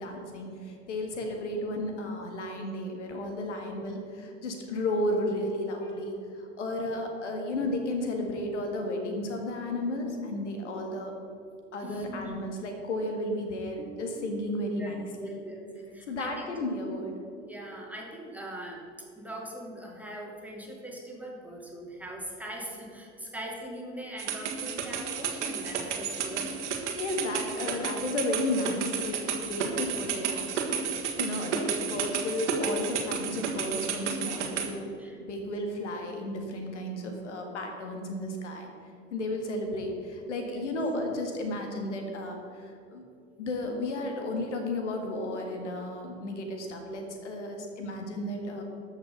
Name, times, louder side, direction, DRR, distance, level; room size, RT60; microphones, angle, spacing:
voice 1, 0.0-11.1 11.7-15.4 16.1-17.2 26.7-34.9 35.2-38.7 39.1-43.0 43.4-48.6, left 1 dB, 75° left, 3 dB, 1.8 m, -33 dB
voice 2, 11.8-12.5 13.8-14.4 14.8-16.5 17.4-18.8 19.2-26.6 35.0-35.2 40.4-40.6, right 1 dB, 5° right, -2 dB, 2.8 m, -42 dB
sound 1, 24.2-34.7, right 6 dB, 75° right, 1.6 m, -32 dB
13.5 x 6.0 x 6.9 m, 2.5 s
figure-of-eight pair, 70°, 36 cm